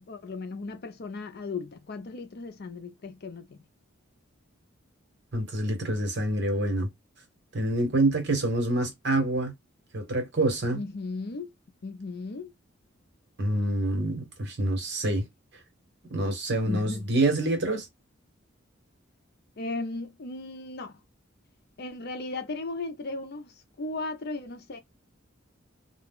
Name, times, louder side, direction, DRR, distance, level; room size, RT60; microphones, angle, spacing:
voice 1, 0.0-3.6 10.7-11.5 11.8-12.5 16.7-17.1 19.6-20.9 21.8-24.8, left 3 dB, 55° left, 0.5 m, -36 dB
voice 2, 5.3-6.9 7.5-9.5 9.9-10.8 13.4-15.3 16.1-17.9, right 1 dB, 60° right, 1.2 m, -26 dB
2.4 x 2.3 x 3.5 m
head